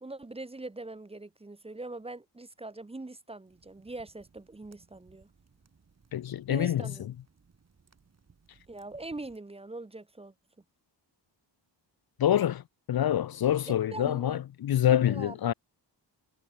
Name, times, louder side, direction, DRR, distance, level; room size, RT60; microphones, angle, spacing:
voice 1, 0.0-5.3 6.5-7.1 8.7-10.3 13.7-14.4 14.9-15.4, right 2 dB, 15° right, 1.2 m, -42 dB
sound 1, 3.4-9.4, right 5 dB, 35° right, 7.2 m, -63 dB
voice 2, 6.1-6.9 12.2-15.5, left 11 dB, 55° left, 0.7 m, -26 dB
wide cardioid pair, 170°, 44 cm